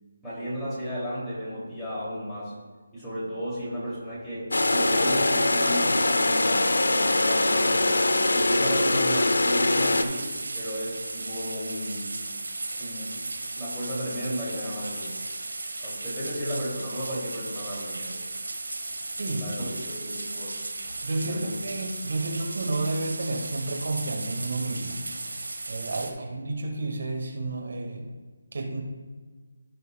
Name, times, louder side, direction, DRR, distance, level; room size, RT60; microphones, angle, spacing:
voice 1, 0.2-2.5 2.9-8.0 8.3-12.1 12.8-13.2 13.6-15.2 15.8-18.1 19.4-20.6 21.2-21.5 25.9-26.1, equal, 5° left, -11 dB, 2.6 m, -34 dB
sound 1, 4.5-10.0, left 2 dB, 85° left, 0.8 m, -22 dB
sound 2, 9.8-26.1, right 2 dB, 85° right, 1.4 m, -35 dB
voice 2, 19.2-19.5 21.0-25.0 25.7-28.1 28.5-28.8, right 2 dB, 60° right, 2 dB, 1.8 m, -31 dB
15.5 x 5.3 x 2.2 m, 1.4 s
figure-of-eight pair, 165°, 0 cm